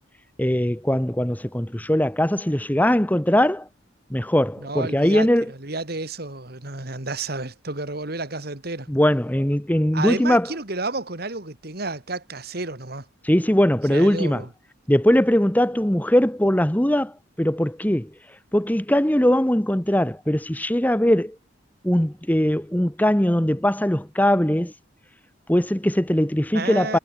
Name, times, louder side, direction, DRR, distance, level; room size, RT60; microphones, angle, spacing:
voice 1, 0.4-3.7 4.1-5.4 8.9-10.5 13.2-14.4 14.9-18.1 18.5-21.4 21.8-24.7 25.5-27.0, equal, 10° left, 1.1 m, -20 dB
voice 2, 4.6-8.9 9.9-13.1 13.9-14.5 26.5-27.0, right 3 dB, 50° right, 2.4 m, -31 dB
head